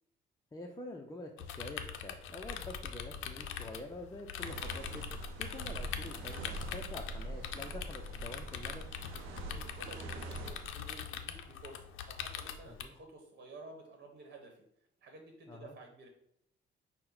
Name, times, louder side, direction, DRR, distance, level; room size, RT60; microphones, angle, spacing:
voice 1, 0.5-8.9 12.7-12.9 15.5-15.7, left 2 dB, 20° left, 0 dB, 0.5 m, -47 dB
sound 1, 1.4-12.8, left 8 dB, 85° left, 0.4 m, -43 dB
sound 2, 2.3-6.1 6.4-6.5, left 3 dB, 15° right, 0.8 m, -53 dB
sound 3, 4.4-10.7, right 2 dB, 90° right, 0.6 m, -44 dB
voice 2, 9.4-14.6 15.0-16.1, right 2 dB, 55° right, 2 dB, 1.1 m, -52 dB
5.6 x 2.1 x 3.9 m, 0.71 s
cardioid pair, 90°, 20 cm